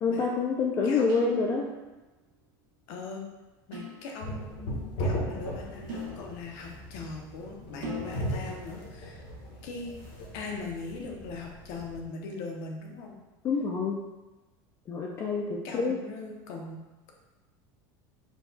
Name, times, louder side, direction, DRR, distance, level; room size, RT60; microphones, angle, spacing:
voice 1, 0.0-1.7 13.4-14.0 14.9-16.0, left 4 dB, 25° left, -1 dB, 0.4 m, -27 dB
voice 2, 0.8-1.7 2.9-3.3 3.7-9.3 9.6-10.0 10.3-13.2 15.6-16.8, left 3 dB, 60° left, 1 dB, 0.7 m, -40 dB
sound 1, 1.1-1.9 3.7-4.6 5.9-6.9 7.8-8.8, left 1 dB, 80° right, 1.0 m, -42 dB
sound 2, 4.2-12.0, equal, 75° left, 1.2 m, -37 dB
4.6 x 2.3 x 3.9 m, 1.1 s
cardioid pair, 165°, 11 cm